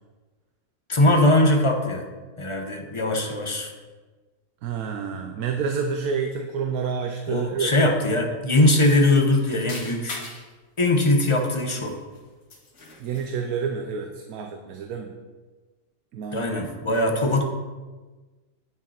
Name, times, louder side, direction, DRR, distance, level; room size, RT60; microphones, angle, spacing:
voice 1, 0.9-2.1 2.4-3.7 7.3-10.2 10.8-12.0 16.3-17.4, left 1 dB, 25° left, 2 dB, 0.9 m, -21 dB
voice 2, 4.6-8.2 13.0-15.1 16.1-16.6, right 6 dB, 75° right, 4 dB, 1.2 m, -29 dB
sound 1, 8.5-10.5 11.0-12.2 12.5-13.4, left 2 dB, 80° left, 2.1 m, -41 dB
9.1 x 7.1 x 4.3 m, 1.3 s
omnidirectional pair, 1.6 m